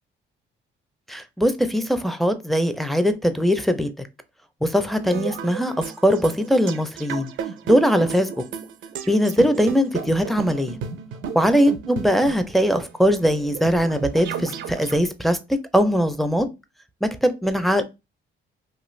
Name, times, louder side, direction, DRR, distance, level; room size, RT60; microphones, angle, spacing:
voice 1, 1.1-4.1 4.6-7.3 7.7-8.4 9.1-10.8 11.4-16.5 17.0-17.8, equal, ahead, 0.4 m, -21 dB
sound 1, 4.9-15.0, right 7 dB, 75° right, 0.5 m, -34 dB
2.5 x 2.4 x 3.1 m
cardioid pair, 90°, 20 cm